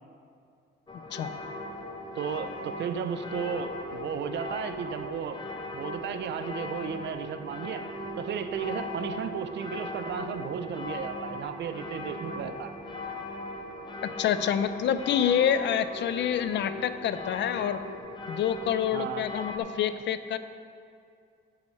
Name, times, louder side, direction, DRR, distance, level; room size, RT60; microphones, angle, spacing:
sound 1, 0.9-19.6, left 2 dB, 25° left, 0.8 m, -39 dB
sound 2, 1.1-18.0, right 4 dB, 5° right, 1.8 m, -48 dB
voice 1, 2.1-5.4 5.7-7.9 8.2-12.7 18.9-19.2, right 7 dB, 65° right, 9 dB, 0.5 m, -34 dB
voice 2, 14.2-17.8 18.3-20.4, left 9 dB, 65° left, 12 dB, 0.4 m, -27 dB
9.1 x 8.4 x 3.2 m, 2.3 s
cardioid pair, 90°, 20 cm